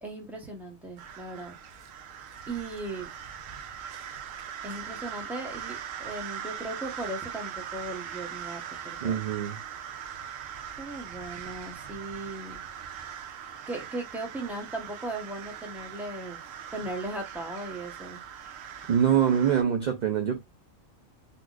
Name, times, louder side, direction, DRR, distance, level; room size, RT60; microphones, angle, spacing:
voice 1, 0.0-1.5 2.5-3.1 4.6-9.2 10.8-12.6 13.7-16.4 16.7-18.2, right 2 dB, ahead, 0.9 m, -37 dB
sound 1, 1.0-19.6, right 8 dB, 75° right, 1.1 m, -41 dB
voice 2, 9.0-9.6 18.9-20.4, right 8 dB, 55° right, 0.5 m, -24 dB
3.9 x 2.4 x 2.4 m
omnidirectional pair, 1.4 m